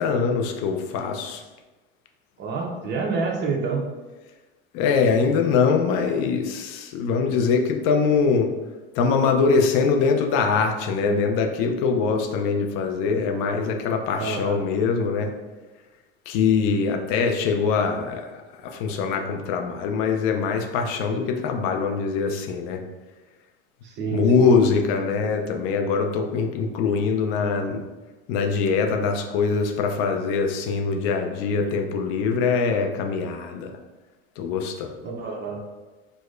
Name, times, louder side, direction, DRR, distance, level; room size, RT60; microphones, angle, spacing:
voice 1, 0.0-1.4 4.7-8.5 9.0-15.3 16.3-22.8 24.1-27.8 28.3-33.7 34.4-34.9, left 5 dB, 55° left, 4 dB, 0.5 m, -23 dB
voice 2, 2.4-3.8 11.0-11.2 14.2-14.6 23.8-24.5 35.0-35.6, right 4 dB, 35° right, 1 dB, 0.7 m, -28 dB
4.7 x 2.1 x 2.4 m, 1.2 s
supercardioid pair, 120°, 29 cm